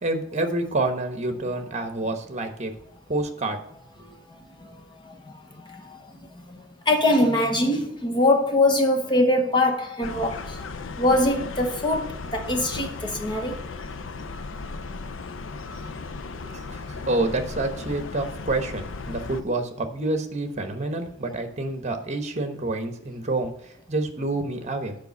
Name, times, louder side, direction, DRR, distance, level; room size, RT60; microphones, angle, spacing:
voice 1, 0.0-2.7 3.1-3.6 4.0-4.1 16.3-25.0, right 2 dB, 35° right, 1.1 m, -28 dB
voice 2, 4.3-6.0 6.4-10.6 11.0-13.6, left 1 dB, 25° left, 0.9 m, -23 dB
sound 1, 10.0-19.4, left 3 dB, 70° left, 0.5 m, -36 dB
6.9 x 5.1 x 7.0 m
head